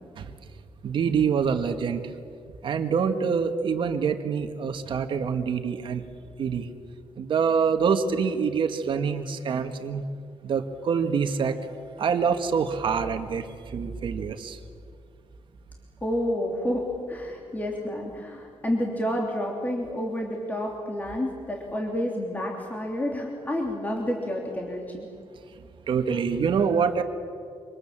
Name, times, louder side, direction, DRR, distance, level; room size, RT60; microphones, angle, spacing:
voice 1, 0.8-2.0 2.6-6.0 6.4-6.7 7.2-10.0 10.4-11.6 12.0-14.6 25.9-27.0, right 6 dB, 60° right, 7 dB, 1.8 m, -25 dB
voice 2, 16.0-25.1, left 1 dB, 15° left, 0 dB, 3.1 m, -29 dB
27.0 x 26.0 x 7.5 m, 2.3 s
wide cardioid pair, 145°, 10 cm